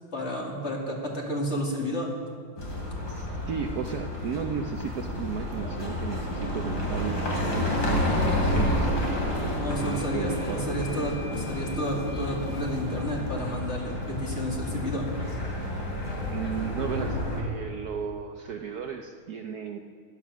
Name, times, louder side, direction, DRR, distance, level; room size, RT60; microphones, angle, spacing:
voice 1, 0.1-2.1 9.6-15.1, left 1 dB, 35° left, -1 dB, 2.5 m, -31 dB
sound 1, 2.6-17.4, left 1 dB, 55° left, 3.4 m, -30 dB
voice 2, 3.1-8.9 9.8-10.6 16.2-19.8, right 7 dB, 65° right, 4 dB, 1.1 m, -34 dB
sound 2, 9.8-15.0, equal, 90° left, 3.8 m, -48 dB
15.5 x 12.0 x 6.1 m, 2.1 s
omnidirectional pair, 2.2 m